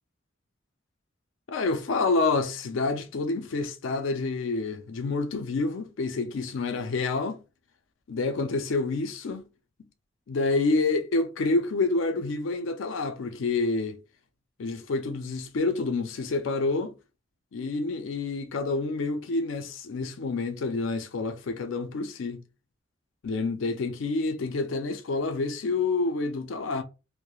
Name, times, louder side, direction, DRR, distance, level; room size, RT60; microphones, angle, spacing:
voice 1, 1.5-7.4 8.1-9.5 10.3-14.0 14.6-16.9 17.5-22.4 23.2-26.8, left 3 dB, 80° left, 0.4 m, -28 dB
2.3 x 2.1 x 2.9 m
head